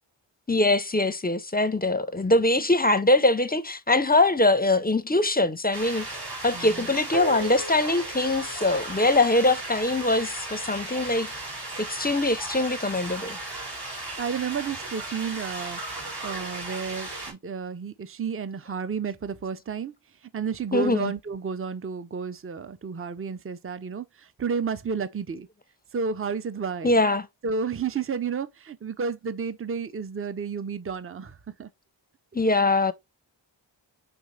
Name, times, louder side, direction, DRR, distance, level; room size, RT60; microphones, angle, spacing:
voice 1, 0.5-6.1 6.4-11.3 11.8-13.4 20.7-21.1 26.8-27.3 32.3-32.9, left 2 dB, 20° left, 0.5 m, -22 dB
sound 1, 5.7-17.3, right 2 dB, 55° right, 2.0 m, -36 dB
voice 2, 6.5-6.9 14.2-15.8 16.2-19.9 20.3-25.5 25.9-27.0 27.4-31.7, right 6 dB, 30° right, 0.5 m, -31 dB
sound 2, 7.1-11.6, right 1 dB, 75° right, 1.2 m, -38 dB
5.2 x 3.2 x 3.1 m
wide cardioid pair, 45°, 46 cm